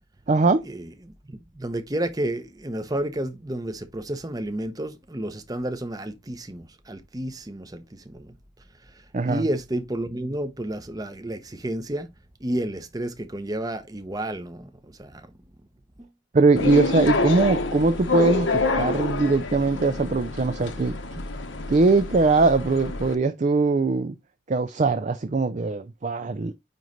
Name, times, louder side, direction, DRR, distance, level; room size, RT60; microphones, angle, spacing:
voice 1, 0.3-0.6 9.1-9.5 16.3-21.2 21.7-24.2 24.5-26.5, right 3 dB, 35° right, 0.4 m, -21 dB
voice 2, 1.3-8.3 9.2-12.1 12.4-14.7 15.0-15.3 16.0-16.1, right 1 dB, 20° right, 0.7 m, -31 dB
sound 1, 16.6-23.1, left 3 dB, 70° left, 1.1 m, -27 dB
9.2 x 3.1 x 3.9 m
head